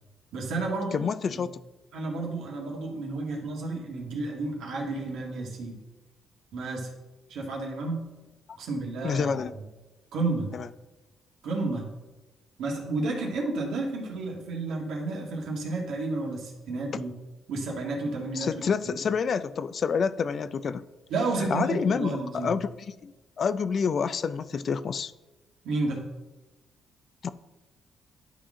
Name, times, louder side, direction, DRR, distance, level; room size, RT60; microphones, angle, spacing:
voice 1, 0.3-1.1 1.9-5.8 6.5-6.9 7.3-8.0 8.6-9.6 10.1-10.5 11.4-11.9 12.6-17.1 17.5-19.0 21.1-22.5 25.6-26.0, right 3 dB, 80° right, -1 dB, 1.8 m, -31 dB
voice 2, 0.9-1.6 9.0-9.5 10.5-10.7 16.9-17.0 18.3-20.8 21.4-23.1 23.4-25.1 27.2-27.3, left 6 dB, 50° left, 15 dB, 0.3 m, -28 dB
11.0 x 4.2 x 3.7 m, 1.1 s
cardioid pair, 90°, 0 cm